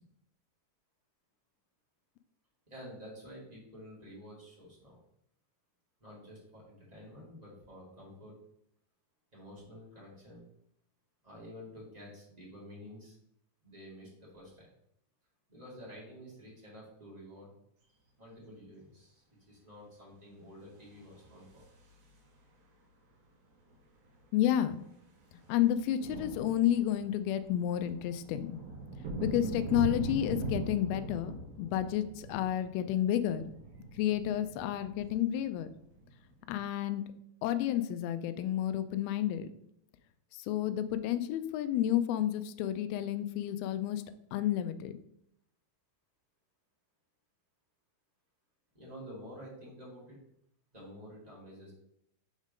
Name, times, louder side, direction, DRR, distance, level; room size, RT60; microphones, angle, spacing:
voice 1, 2.7-4.9 6.0-8.3 9.3-10.4 11.2-13.1 13.6-14.7 15.5-17.6 18.2-21.6 48.7-50.2 50.7-51.7, equal, 20° right, -7 dB, 1.2 m, -50 dB
sound 1, 20.8-22.4 23.7-23.8 24.0-24.2 24.5-36.6, right 3 dB, 60° right, 2.2 m, -42 dB
voice 2, 24.3-24.8 25.5-28.6 29.2-33.5 34.0-35.7 36.5-37.0 37.4-39.5 40.3-44.0 44.3-45.0, left 11 dB, 80° left, 10 dB, 2.3 m, -31 dB
6.4 x 3.7 x 5.0 m, 0.73 s
omnidirectional pair, 4.6 m